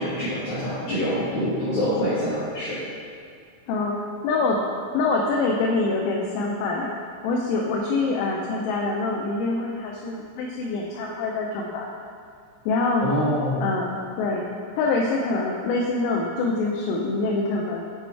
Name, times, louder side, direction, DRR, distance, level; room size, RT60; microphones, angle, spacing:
voice 1, 0.0-2.8 13.0-13.6, equal, 70° left, -14 dB, 1.8 m, -25 dB
voice 2, 4.2-4.6 4.9-6.9 7.2-11.9 12.7-13.1 13.6-13.9 14.2-14.5 14.8-17.8, left 3 dB, 85° left, -2 dB, 3.0 m, -25 dB
7.9 x 3.0 x 4.4 m, 2.3 s
omnidirectional pair, 5.5 m